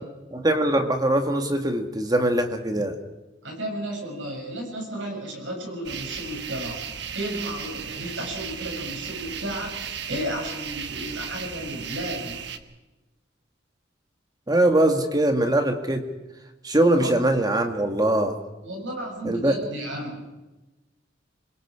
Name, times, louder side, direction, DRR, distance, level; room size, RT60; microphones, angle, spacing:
voice 1, 0.3-2.9 14.5-16.1 16.6-18.3 19.2-19.6, right 1 dB, 20° right, 6 dB, 1.9 m, -22 dB
voice 2, 3.4-6.8 7.1-12.4 17.0-17.2 18.6-20.3, right 1 dB, 85° right, 1 dB, 7.2 m, -33 dB
sound 1, 5.8-12.6, right 7 dB, 65° right, 1.3 m, -35 dB
27.0 x 21.5 x 5.0 m, 1.1 s
head